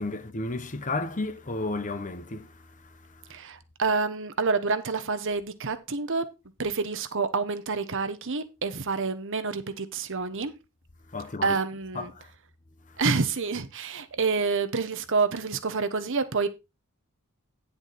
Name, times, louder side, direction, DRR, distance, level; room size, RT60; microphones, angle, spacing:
voice 1, 0.0-3.4 11.1-11.6 11.9-12.3 12.9-13.1, left 2 dB, 35° left, 1.0 m, -34 dB
voice 2, 3.3-6.2 6.6-10.5 11.4-12.1 13.0-16.5, right 4 dB, 60° right, 1.1 m, -28 dB
10.5 x 7.1 x 4.2 m
head